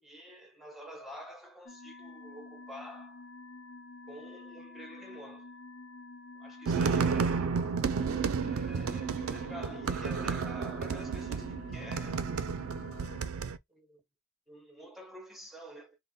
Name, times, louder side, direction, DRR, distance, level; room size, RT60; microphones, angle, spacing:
voice 1, 0.0-3.2 4.1-5.5 6.4-7.6 8.4-12.3 13.7-14.0 14.5-16.0, equal, ahead, 0.9 m, -48 dB
sound 1, 1.7-13.3, left 3 dB, 75° left, 0.8 m, -49 dB
sound 2, 6.7-13.6, right 5 dB, 80° right, 0.4 m, -32 dB
3.4 x 2.1 x 4.1 m
head